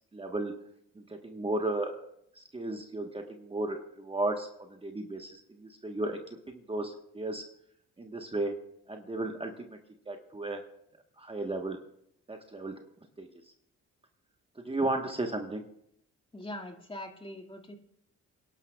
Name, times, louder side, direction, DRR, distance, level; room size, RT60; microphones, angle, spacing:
voice 1, 0.1-0.5 0.9-1.9 2.3-4.5 4.8-7.5 8.0-8.5 8.9-9.8 10.1-10.6 11.2-11.8 12.3-12.7 13.2-13.3 14.6-15.6, right 2 dB, 20° right, 3 dB, 1.2 m, -34 dB
voice 2, 16.3-17.7, left 1 dB, 15° left, 3 dB, 1.9 m, -42 dB
28.5 x 11.5 x 2.3 m, 0.74 s
cardioid pair, 90°, 30 cm